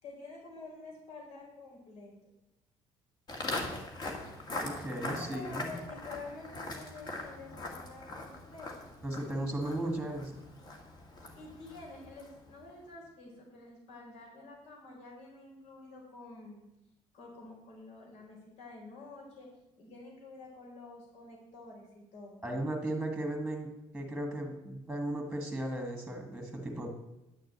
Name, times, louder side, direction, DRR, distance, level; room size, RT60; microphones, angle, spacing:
voice 1, 0.0-2.1 5.0-8.7 11.4-16.6 17.1-19.5 19.8-22.4, left 3 dB, 70° left, -1 dB, 4.1 m, -49 dB
Walk footsteps, 3.3-12.5, left 2 dB, 40° left, 1.9 m, -41 dB
voice 2, 4.6-5.7 9.0-10.4 22.4-26.9, right 1 dB, 5° right, 3 dB, 1.7 m, -36 dB
10.5 x 6.2 x 8.0 m, 0.94 s
cardioid pair, 145°, 12 cm